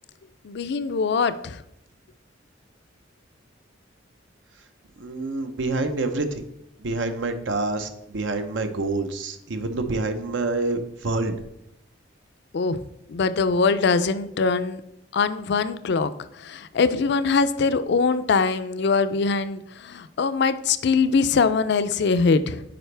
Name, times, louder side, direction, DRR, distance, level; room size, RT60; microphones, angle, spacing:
voice 1, 0.4-1.6 12.5-12.8 13.1-14.8 15.1-22.6, left 4 dB, 60° left, 13 dB, 0.4 m, -22 dB
voice 2, 5.0-6.4 6.8-11.3, right 2 dB, 75° right, 8 dB, 0.8 m, -27 dB
9.0 x 5.1 x 3.3 m, 0.81 s
head